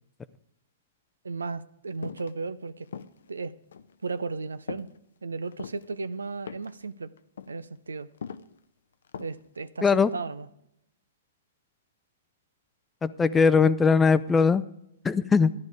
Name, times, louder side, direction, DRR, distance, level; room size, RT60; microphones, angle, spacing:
voice 1, 1.2-2.9 3.3-3.5 4.0-4.9 5.2-7.1 7.5-8.1 9.2-10.5, right 4 dB, 85° right, 16 dB, 0.6 m, -35 dB
sound 1, 2.0-2.3 2.9-3.3 3.7-3.9 4.7-5.0 5.4-5.9 6.5-6.8 7.2-7.5 8.2-8.5 9.1-9.5 9.8-9.9, left 7 dB, 70° left, 0.6 m, -40 dB
voice 2, 13.0-14.6 15.0-15.5, left 5 dB, 15° left, 15 dB, 0.5 m, -20 dB
14.0 x 10.5 x 4.9 m, 0.79 s
hypercardioid pair, 120°, 0 cm